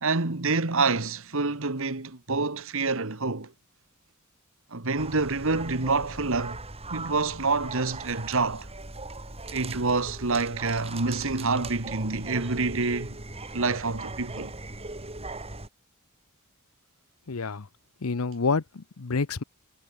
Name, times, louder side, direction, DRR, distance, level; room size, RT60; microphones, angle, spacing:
voice 1, 0.0-3.5 4.7-6.6 6.9-8.7 9.5-13.2 13.5-14.5, right 3 dB, 65° right, 1.8 m, -27 dB
sound 1, 5.0-15.7, right 2 dB, 30° right, 6.4 m, -39 dB
voice 2, 17.3-17.7 18.0-19.4, left 4 dB, 80° left, 0.8 m, -28 dB
head